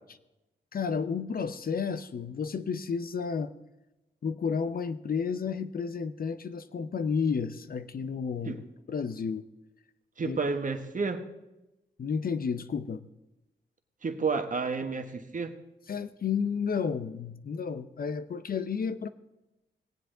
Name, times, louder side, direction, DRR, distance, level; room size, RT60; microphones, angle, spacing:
voice 1, 0.7-3.5 4.2-8.6 8.9-9.4 10.2-10.4 12.0-13.1 15.9-19.1, left 6 dB, 50° left, 12 dB, 0.6 m, -31 dB
voice 2, 10.2-11.2 14.0-15.5, right 4 dB, 45° right, 7 dB, 1.3 m, -31 dB
18.5 x 7.8 x 3.8 m, 0.97 s
cardioid pair, 70°, 19 cm